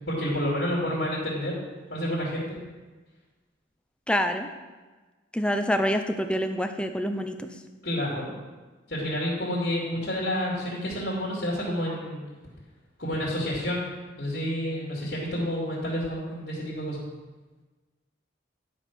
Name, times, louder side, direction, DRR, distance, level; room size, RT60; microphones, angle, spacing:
voice 1, 0.1-1.5 1.9-2.6 7.8-8.3 8.9-12.2 13.0-13.8 14.2-17.0, equal, 55° left, -5 dB, 2.6 m, -29 dB
voice 2, 4.1-4.5 5.3-7.5, equal, 5° left, 6 dB, 0.5 m, -26 dB
11.0 x 5.4 x 6.0 m, 1.3 s
head